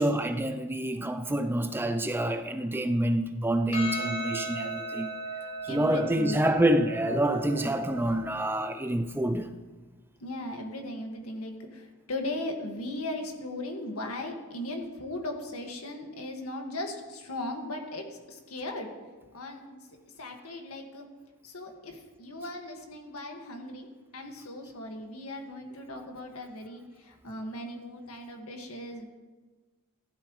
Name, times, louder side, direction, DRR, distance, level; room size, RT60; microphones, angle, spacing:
voice 1, 0.0-5.1 5.6-9.5, right 1 dB, 10° right, 0.5 m, -27 dB
Percussion, 3.7-8.3, right 2 dB, 55° left, 4.4 m, -37 dB
voice 2, 5.7-6.5 10.2-18.9 19.3-19.8 20.2-21.1 21.4-23.9 24.1-29.1, left 1 dB, 80° left, 1.9 m, -38 dB
15.5 x 12.0 x 3.2 m
head